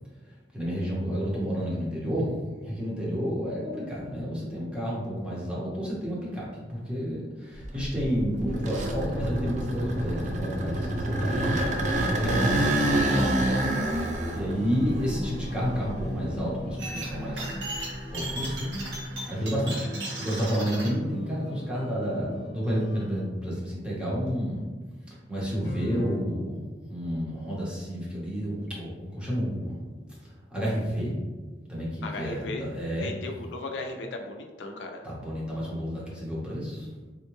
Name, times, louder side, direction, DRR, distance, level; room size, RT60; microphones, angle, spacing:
voice 1, 0.5-2.3 2.6-11.5 12.1-13.5 14.3-17.6 18.1-18.7 19.2-24.6 25.3-26.6 26.9-29.8 30.5-31.1 31.7-33.1 35.0-36.9, equal, 5° right, -7 dB, 0.8 m, -30 dB
sound 1, 7.6-16.6 17.1-18.9, right 1 dB, 45° right, 0.4 m, -28 dB
sound 2, 14.4-23.2 25.6-26.2, equal, 40° left, 1.0 m, -38 dB
sound 3, 16.8-20.9, right 2 dB, 75° right, 0.8 m, -37 dB
voice 2, 32.0-32.6 33.0-35.0, left 2 dB, 90° left, 3 dB, 0.4 m, -36 dB
3.5 x 2.2 x 3.0 m, 1.3 s
head